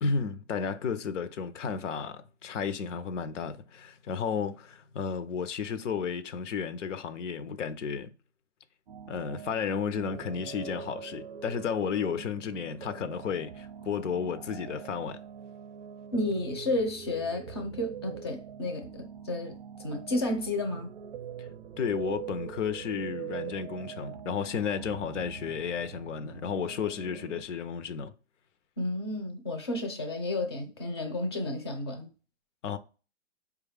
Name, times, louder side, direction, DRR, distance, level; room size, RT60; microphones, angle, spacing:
voice 1, 0.0-8.1 9.1-15.2 21.8-28.1 32.6-32.8, left 6 dB, 85° left, 0.6 m, -33 dB
sound 1, 8.9-27.4, right 8 dB, 50° right, 0.5 m, -43 dB
voice 2, 16.1-20.9 28.8-32.1, left 2 dB, 25° left, 0.4 m, -32 dB
4.7 x 2.3 x 3.3 m
hypercardioid pair, 165°, 36 cm